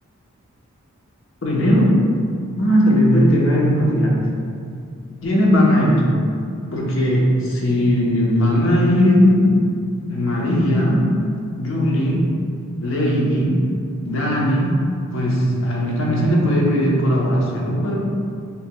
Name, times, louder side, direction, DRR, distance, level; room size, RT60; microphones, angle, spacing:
voice 1, 1.4-2.0 2.6-4.1 5.2-6.0 6.7-9.5 10.1-11.0 11.6-12.3 12.8-13.6 14.0-14.8 15.1-18.0, equal, 65° left, -3 dB, 0.9 m, -18 dB
6.5 x 3.0 x 2.2 m, 2.4 s
head